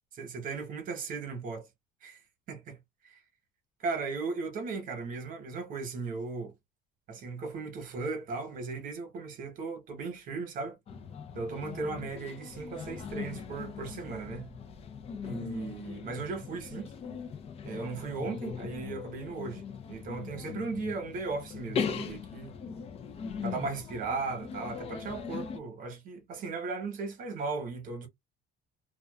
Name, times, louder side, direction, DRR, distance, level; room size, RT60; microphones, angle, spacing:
voice 1, 0.2-1.7 2.0-2.2 2.5-2.8 3.8-6.5 7.1-10.8 11.3-14.5 15.2-16.9 17.6-19.6 19.9-22.5 23.4-28.1, right 4 dB, 45° right, 1.0 m, -37 dB
sound 1, 10.9-25.6, left 6 dB, 30° left, 0.4 m, -39 dB
2.4 x 2.2 x 2.3 m
cardioid pair, 150°, 20 cm